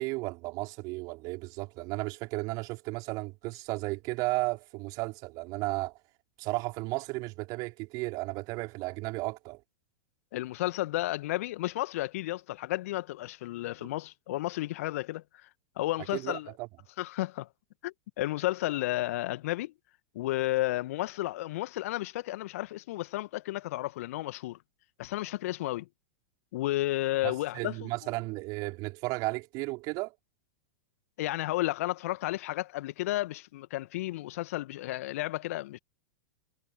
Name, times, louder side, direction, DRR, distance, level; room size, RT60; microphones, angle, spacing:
voice 1, 0.0-6.0 6.4-9.6 16.1-16.7 27.2-30.1, right 24 dB, 45° right, 4.9 m, -34 dB
voice 2, 10.3-15.2 15.8-16.5 17.0-17.5 17.8-19.7 20.2-24.6 25.0-25.9 26.5-27.9 31.2-35.8, left 17 dB, 60° left, 1.9 m, -32 dB
figure-of-eight pair, 95°, 9 cm